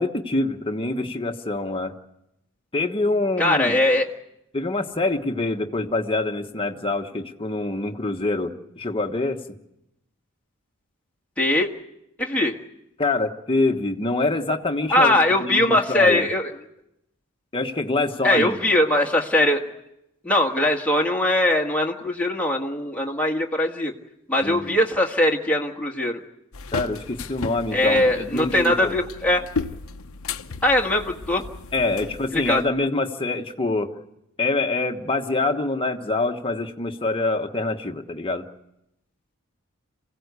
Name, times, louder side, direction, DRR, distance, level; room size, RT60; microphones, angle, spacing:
voice 1, 0.0-1.9 2.7-3.8 4.5-9.4 13.0-16.3 17.5-18.7 24.4-24.8 26.7-29.0 31.7-33.9 34.4-38.5, left 2 dB, 25° left, 3 dB, 1.3 m, -25 dB
voice 2, 3.4-4.1 11.4-11.7 12.2-12.6 14.9-16.5 18.2-19.6 20.2-23.9 24.3-26.2 27.7-29.4 30.6-31.4 32.3-32.6, left 1 dB, 5° left, -1 dB, 1.6 m, -21 dB
sound 1, 26.5-32.7, left 4 dB, 80° left, 0.9 m, -34 dB
27.0 x 16.5 x 8.3 m, 0.87 s
head